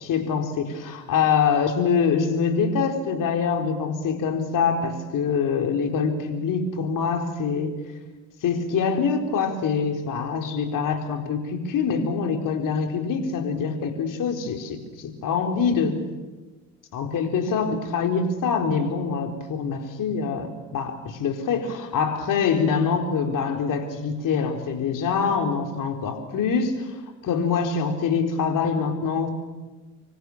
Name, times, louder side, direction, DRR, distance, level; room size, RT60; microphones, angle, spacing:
voice 1, 0.0-7.8 8.4-16.0 16.9-29.3, left 5 dB, 45° left, 4 dB, 4.4 m, -25 dB
26.0 x 24.5 x 7.4 m, 1.3 s
hypercardioid pair, 70°, 44 cm